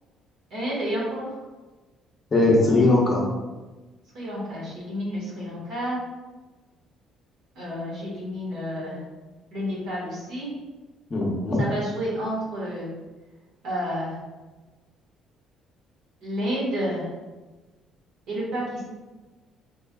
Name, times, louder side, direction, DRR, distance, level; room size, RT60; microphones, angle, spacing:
voice 1, 0.5-1.3 4.1-6.0 7.5-9.0 9.5-10.5 11.6-12.9 13.6-14.2 16.2-17.1 18.3-18.8, equal, 65° right, -6 dB, 1.4 m, -30 dB
voice 2, 2.3-3.2 11.1-11.6, left 2 dB, 25° left, -2 dB, 0.6 m, -19 dB
3.3 x 3.3 x 2.3 m, 1.2 s
cardioid pair, 160°, 0 cm